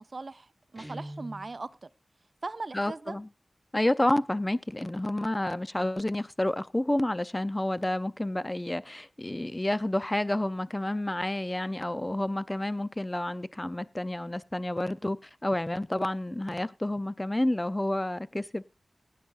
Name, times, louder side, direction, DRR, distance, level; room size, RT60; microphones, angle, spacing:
voice 1, 0.0-1.9 2.4-3.2, right 3 dB, 50° right, 0.6 m, -39 dB
Guitar, 0.8-1.6, right 1 dB, ahead, 1.4 m, -42 dB
voice 2, 2.7-3.3 3.7-18.6, left 1 dB, 20° left, 0.6 m, -29 dB
18.0 x 10.0 x 2.5 m
wide cardioid pair, 70°, 0 cm